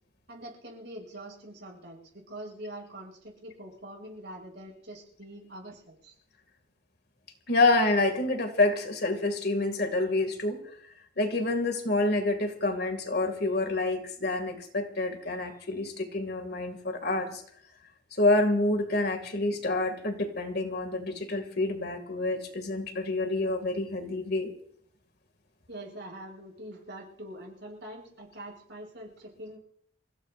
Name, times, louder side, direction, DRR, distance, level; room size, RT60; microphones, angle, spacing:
voice 1, 0.3-6.2 25.7-29.6, right 1 dB, 65° right, -1 dB, 6.8 m, -44 dB
voice 2, 7.5-10.6 11.2-17.4 18.2-24.5, left 2 dB, 55° left, 6 dB, 2.3 m, -27 dB
27.5 x 16.5 x 2.6 m, 0.65 s
head